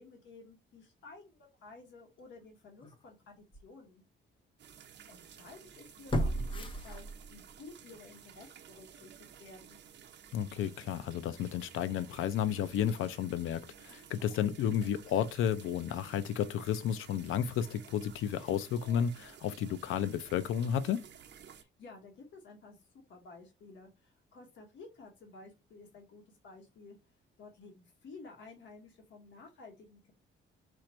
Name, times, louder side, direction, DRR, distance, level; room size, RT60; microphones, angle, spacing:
voice 1, 0.0-4.0 5.1-9.1 9.4-9.8 21.5-27.0 27.4-30.1, left 3 dB, 65° left, 1.4 m, -53 dB
sound 1, 2.8-2.9 3.5-3.6 6.1-7.5 7.9-8.0, equal, 25° left, 0.7 m, -33 dB
sound 2, 4.6-21.6, right 8 dB, 60° right, 0.8 m, -54 dB
voice 2, 10.3-21.1, left 9 dB, 90° left, 0.5 m, -32 dB
4.5 x 2.5 x 4.3 m
cardioid pair, 145°, 21 cm